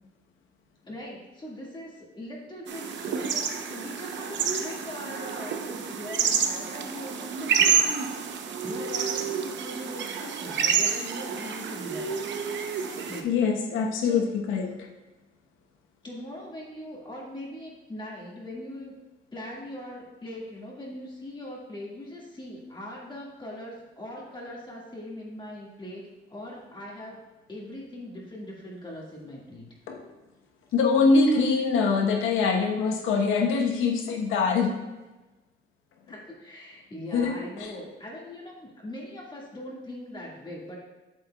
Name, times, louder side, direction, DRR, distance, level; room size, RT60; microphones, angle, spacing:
voice 1, 0.8-7.8 8.1-12.1 13.1-13.3 14.0-14.2 16.0-19.0 19.3-27.2 27.5-29.7 36.1-40.8, left 1 dB, 25° left, -4 dB, 1.8 m, -41 dB
sound 1, 2.7-13.2, right 7 dB, 65° right, 0.7 m, -28 dB
voice 2, 13.2-14.9 29.9-30.1 30.7-34.8 37.1-37.7, left 4 dB, 90° left, 2 dB, 1.0 m, -24 dB
8.0 x 6.9 x 2.3 m, 1.1 s
cardioid pair, 90°, 20 cm